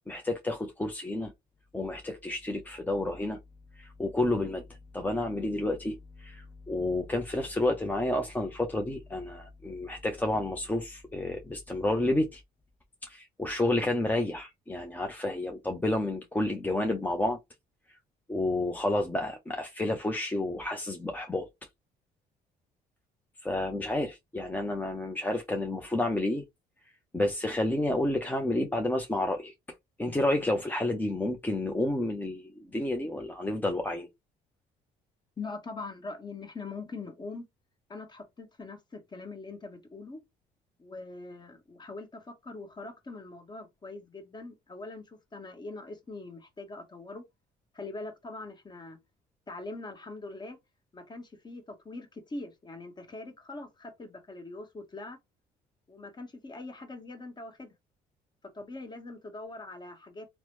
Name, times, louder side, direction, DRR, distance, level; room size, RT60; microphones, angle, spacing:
voice 1, 0.1-1.3 1.7-3.4 3.8-4.6 4.9-12.4 13.0-17.4 18.3-21.5 23.4-26.4 27.1-29.5 30.0-34.1, left 1 dB, 10° left, 0.5 m, -30 dB
voice 2, 35.4-37.4 37.9-40.2 40.8-47.3 47.7-49.0 49.5-50.6 50.9-55.2 55.9-57.7 58.5-60.3, left 3 dB, 25° left, 1.2 m, -42 dB
3.0 x 2.0 x 3.0 m
cardioid pair, 110°, 17 cm